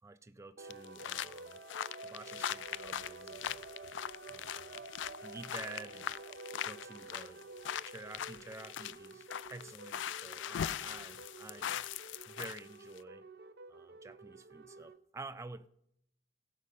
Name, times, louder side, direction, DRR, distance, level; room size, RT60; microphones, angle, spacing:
voice 1, 0.0-1.6 2.0-3.6 4.3-4.9 5.2-6.2 6.6-7.5 7.9-13.3 13.7-15.7, right 3 dB, 15° right, 0.4 m, -50 dB
sound 1, 0.6-15.0, right 3 dB, 60° right, 0.8 m, -51 dB
sound 2, 0.7-12.6 13.0-13.1, left 10 dB, 85° left, 0.3 m, -41 dB
17.0 x 6.5 x 5.5 m
head